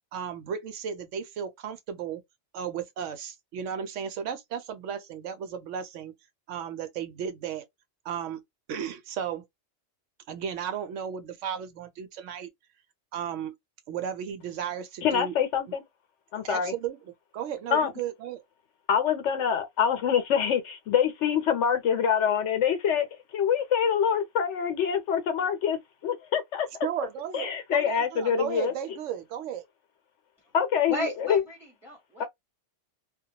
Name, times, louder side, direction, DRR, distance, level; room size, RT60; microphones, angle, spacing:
voice 1, 0.1-2.2 2.5-6.1 6.5-7.6 8.0-8.4 8.7-9.4 10.3-12.5 13.1-13.6 13.9-15.3 16.4-17.0 17.3-18.4 26.8-29.6, right 8 dB, 85° right, 0.9 m, -34 dB
voice 2, 15.0-15.8 16.3-16.7 17.7-17.9 18.9-26.7 27.3-28.7 30.5-31.4, left 8 dB, 75° left, 0.9 m, -25 dB
voice 3, 30.9-31.6 31.8-32.2, equal, ahead, 0.9 m, -33 dB
2.3 x 2.1 x 2.7 m
omnidirectional pair, 1.2 m